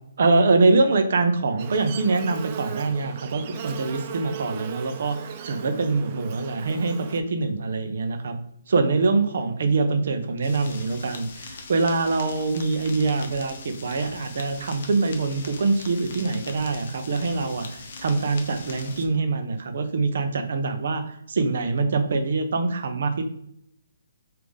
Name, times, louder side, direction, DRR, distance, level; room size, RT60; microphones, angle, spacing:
voice 1, 0.2-8.4 8.7-23.2, right 3 dB, 60° right, 7 dB, 0.7 m, -24 dB
Buzz, 1.6-7.2, right 7 dB, 35° right, 0.4 m, -37 dB
sound 1, 10.4-19.1, left 4 dB, 50° left, 0.7 m, -41 dB
3.6 x 2.8 x 3.5 m, 0.75 s
hypercardioid pair, 150°, 0 cm